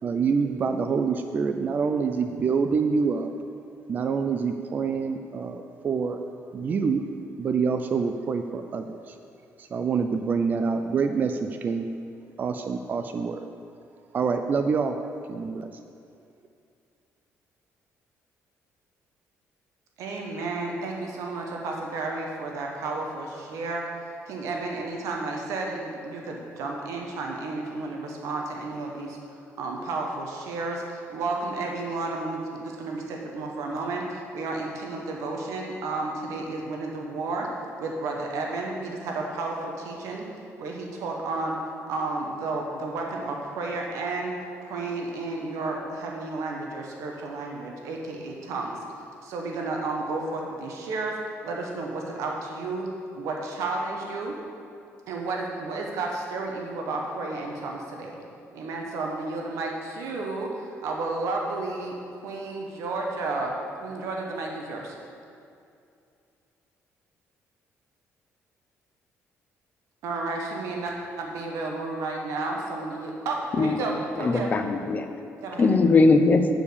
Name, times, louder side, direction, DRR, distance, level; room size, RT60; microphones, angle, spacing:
voice 1, 0.0-3.3 3.9-6.2 6.5-7.0 7.4-9.2 9.6-11.9 12.4-13.5 14.1-15.0 15.3-15.7, right 5 dB, 35° right, 7 dB, 0.4 m, -26 dB
voice 2, 20.0-23.8 24.2-29.2 29.6-37.5 37.8-40.2 40.6-41.6 41.9-44.3 44.6-48.8 49.2-51.1 51.4-52.9 53.1-54.3 55.1-58.2 58.5-63.5 63.8-64.9 70.0-74.5 75.4-75.7, right 3 dB, 85° right, 0 dB, 1.1 m, -32 dB
voice 3, 74.2-75.1 75.6-76.5, left 3 dB, 30° left, 7 dB, 0.6 m, -20 dB
8.9 x 4.8 x 6.8 m, 2.5 s
cardioid pair, 145°, 5 cm